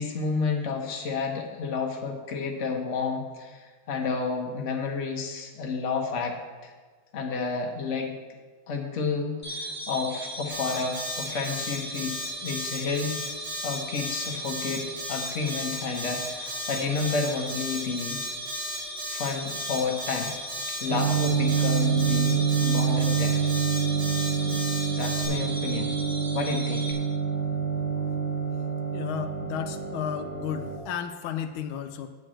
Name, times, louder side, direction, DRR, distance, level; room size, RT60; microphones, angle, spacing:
voice 1, 0.0-6.4 6.6-6.7 7.1-8.1 8.7-13.2 13.6-18.3 19.1-20.3 20.8-23.4 24.4-24.6 25.0-25.9 26.3-27.0, left 4 dB, 45° left, 2 dB, 1.2 m, -30 dB
sound 1, 9.4-26.9, right 1 dB, 10° left, 1.6 m, -37 dB
Alarm, 10.5-25.3, left 1 dB, 80° right, 3.8 m, -36 dB
sound 2, 20.9-30.8, right 6 dB, 65° right, 1.0 m, -27 dB
voice 2, 28.9-32.1, left 9 dB, 85° left, 8 dB, 1.4 m, -33 dB
9.3 x 4.6 x 7.6 m, 1.4 s
omnidirectional pair, 2.2 m